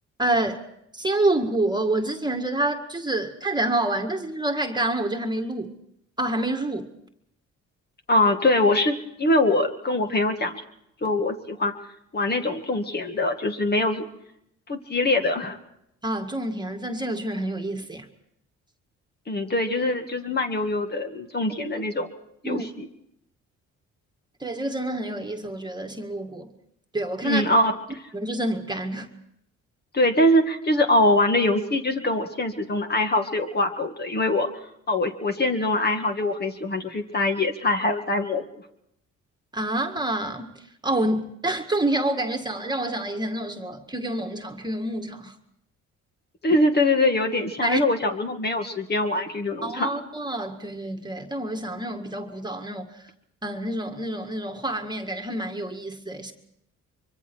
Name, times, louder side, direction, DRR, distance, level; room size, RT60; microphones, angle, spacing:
voice 1, 0.2-0.6 0.9-5.7 6.2-6.9 16.0-18.1 21.7-21.8 22.4-22.7 24.4-26.5 26.9-27.5 28.1-29.1 39.5-40.5 40.8-45.3 47.6-47.8 49.6-52.9 53.4-56.3, right 1 dB, 15° right, 1.9 m, -27 dB
voice 2, 8.1-10.5 11.0-11.7 12.1-14.0 14.7-15.6 19.3-22.1 22.4-22.9 27.2-28.0 29.9-34.5 34.9-38.4 46.4-49.9, left 2 dB, 35° left, 2.0 m, -23 dB
24.5 x 23.5 x 4.6 m
cardioid pair, 90°, 30 cm